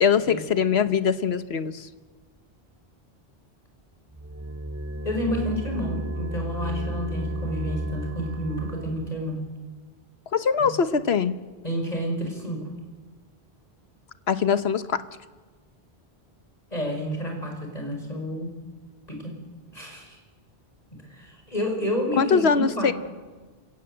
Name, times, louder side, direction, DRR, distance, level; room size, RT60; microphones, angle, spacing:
voice 1, 0.0-1.9 10.3-11.4 14.3-15.0 22.2-22.9, left 6 dB, 85° left, 12 dB, 1.3 m, -22 dB
sound 1, 4.1-9.2, right 1 dB, 15° right, 1.5 m, -33 dB
voice 2, 5.0-9.4 10.6-10.7 11.6-12.7 16.7-18.5 19.1-19.4 19.7-20.2 20.9-22.9, equal, 40° left, 2 dB, 5.6 m, -30 dB
27.5 x 17.5 x 7.9 m, 1.3 s
omnidirectional pair, 1.0 m